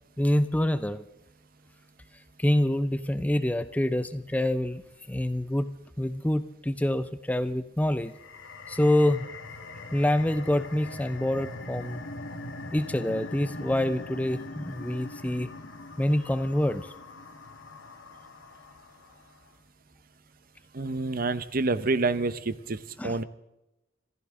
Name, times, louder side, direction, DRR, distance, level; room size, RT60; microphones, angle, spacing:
voice 1, 0.2-1.0 2.4-4.8 5.1-8.1 8.7-9.3 9.9-12.0 12.7-15.5 16.0-16.9 23.0-23.2, left 1 dB, 10° left, 12 dB, 0.5 m, -26 dB
sound 1, 8.0-19.2, left 2 dB, 75° left, 1.4 m, -42 dB
voice 2, 20.7-23.2, right 3 dB, 45° right, 14 dB, 0.8 m, -28 dB
26.0 x 14.5 x 3.7 m, 0.93 s
head